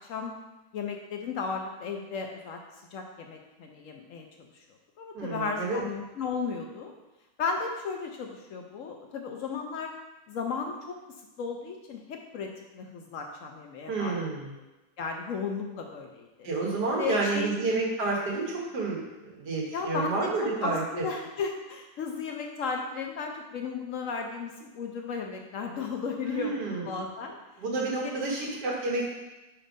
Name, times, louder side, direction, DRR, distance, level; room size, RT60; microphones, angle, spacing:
voice 1, 0.7-2.6 2.9-4.3 4.5-4.6 5.0-6.9 7.4-9.9 10.3-11.0 11.4-14.3 15.0-16.5 17.0-17.5 19.7-27.4 28.0-28.5, left 5 dB, 65° left, 3 dB, 0.8 m, -35 dB
voice 2, 5.1-5.8 13.9-14.5 16.4-21.1 26.3-26.9 27.6-29.1, right 3 dB, 90° right, -2 dB, 1.9 m, -30 dB
5.1 x 4.3 x 5.2 m, 1.0 s
omnidirectional pair, 1.7 m